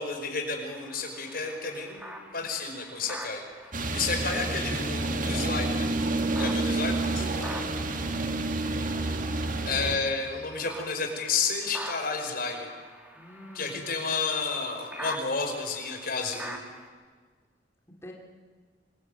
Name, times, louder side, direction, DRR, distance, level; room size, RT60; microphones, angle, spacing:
voice 1, 0.0-3.4 3.9-5.9 6.4-7.3 9.6-12.7 13.5-16.6, left 4 dB, 55° left, 3 dB, 5.3 m, -31 dB
sound 1, 0.7-16.9, equal, 10° right, 3.0 m, -45 dB
sound 2, 3.7-10.0, right 2 dB, 50° right, 2.1 m, -29 dB
voice 2, 7.2-8.4 13.1-13.8 18.0-18.1, left 1 dB, 15° left, -2 dB, 3.3 m, -44 dB
25.5 x 22.0 x 9.5 m, 1.5 s
head